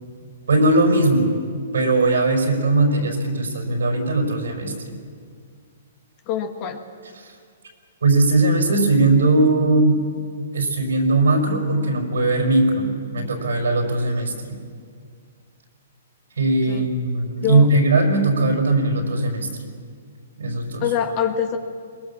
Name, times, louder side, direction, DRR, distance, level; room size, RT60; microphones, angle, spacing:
voice 1, 0.5-1.4 1.7-5.0 7.2-7.3 8.0-10.0 10.5-14.6 16.4-19.5 20.4-20.9, right 2 dB, 85° right, 3 dB, 5.6 m, -19 dB
voice 2, 6.3-6.8 16.7-16.9 17.4-17.7 20.8-21.6, left 8 dB, 40° left, 6 dB, 1.5 m, -24 dB
22.0 x 20.0 x 7.2 m, 2.1 s
hypercardioid pair, 135°, 0 cm